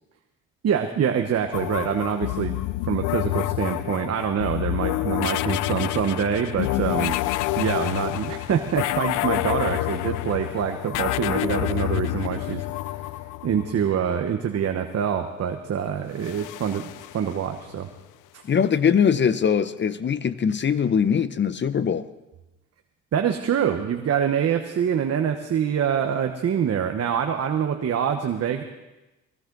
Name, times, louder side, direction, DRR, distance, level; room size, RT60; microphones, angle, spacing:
voice 1, 0.6-2.6 2.9-7.2 7.6-12.6 13.0-13.1 13.4-16.9 17.1-17.9 23.1-28.6, right 8 dB, 55° right, 5 dB, 1.2 m, -25 dB
sound 1, 1.5-14.1 16.1-17.8, left 17 dB, 85° left, 0.5 m, -28 dB
voice 2, 18.5-22.1, left 7 dB, 40° left, 14 dB, 0.7 m, -22 dB
19.5 x 17.0 x 4.0 m, 1.0 s
cardioid pair, 90°, 30 cm